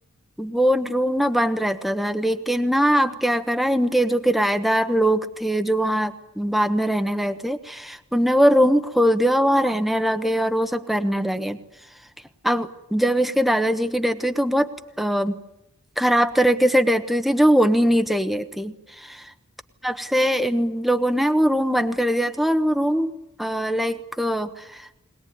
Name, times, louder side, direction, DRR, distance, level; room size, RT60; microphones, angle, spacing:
voice 1, 0.4-11.6 12.4-14.7 15.0-15.4 16.0-19.2 19.8-23.1 23.4-24.8, equal, ahead, 9 dB, 1.2 m, -21 dB
21.5 x 21.0 x 9.5 m, 0.88 s
head